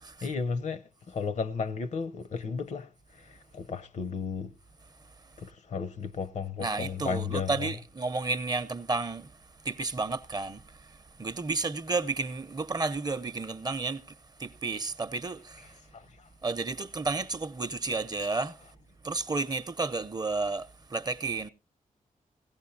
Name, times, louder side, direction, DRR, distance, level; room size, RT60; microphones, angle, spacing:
voice 1, 0.2-2.9 3.2-4.5 5.4-7.7 15.9-16.3, left 5 dB, 60° left, 0.7 m, -34 dB
voice 2, 6.6-9.3 9.6-10.6 11.2-14.0 14.4-15.7 16.4-18.5 19.0-21.5, right 3 dB, 30° right, 0.6 m, -32 dB
17.5 x 14.5 x 2.7 m
wide cardioid pair, 105°, 14 cm